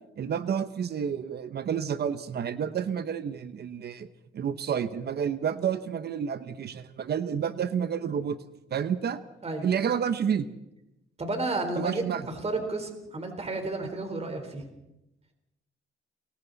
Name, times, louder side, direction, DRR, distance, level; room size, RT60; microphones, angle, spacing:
voice 1, 0.2-4.1 4.3-8.4 8.7-9.2 9.6-10.5 11.8-12.3, right 8 dB, 55° right, 12 dB, 1.1 m, -30 dB
voice 2, 11.2-14.6, right 2 dB, 30° right, 5 dB, 4.1 m, -32 dB
30.0 x 22.5 x 4.1 m, 0.92 s
cardioid pair, 90°, 20 cm